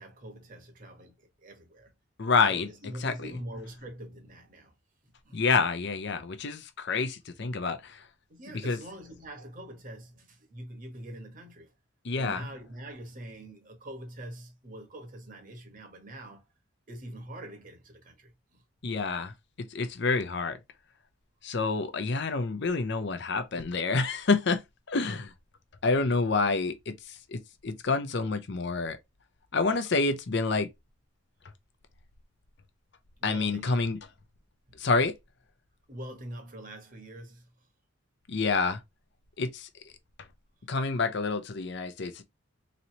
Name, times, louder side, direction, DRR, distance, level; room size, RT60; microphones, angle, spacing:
voice 1, 0.0-1.9 2.5-4.7 5.2-5.4 8.3-11.7 12.2-16.4 16.9-18.6 33.2-33.8 35.9-37.5, right 1 dB, 40° right, 1.2 m, -44 dB
voice 2, 2.2-2.7 3.0-3.3 5.3-8.0 8.5-8.8 12.0-12.5 18.8-20.6 21.4-24.6 24.9-25.3 25.8-29.0 29.5-30.7 33.2-34.0 34.8-35.1 38.3-38.8 39.4-39.7 40.7-42.2, left 4 dB, 55° left, 0.6 m, -28 dB
4.0 x 3.1 x 2.7 m
head